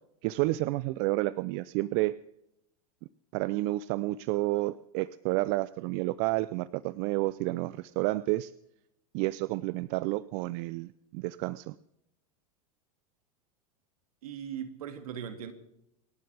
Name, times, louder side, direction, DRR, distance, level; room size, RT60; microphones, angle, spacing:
voice 1, 0.2-2.1 3.3-8.5 9.1-11.7, right 19 dB, 50° right, 0.5 m, -30 dB
voice 2, 14.2-15.5, right 8 dB, 75° right, 2.2 m, -39 dB
28.0 x 12.0 x 3.5 m
hypercardioid pair, 100°, 19 cm